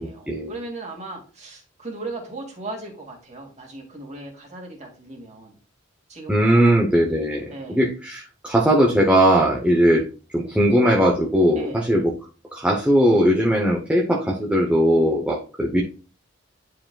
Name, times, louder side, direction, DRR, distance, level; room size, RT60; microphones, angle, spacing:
voice 1, 0.0-5.6 6.1-6.8 7.5-7.8 11.6-11.9, right 2 dB, 35° right, 1 dB, 2.2 m, -37 dB
voice 2, 6.3-7.4 7.7-10.0 10.3-12.1 12.5-15.8, equal, 5° right, 0 dB, 0.8 m, -19 dB
10.0 x 5.0 x 2.3 m, 0.36 s
head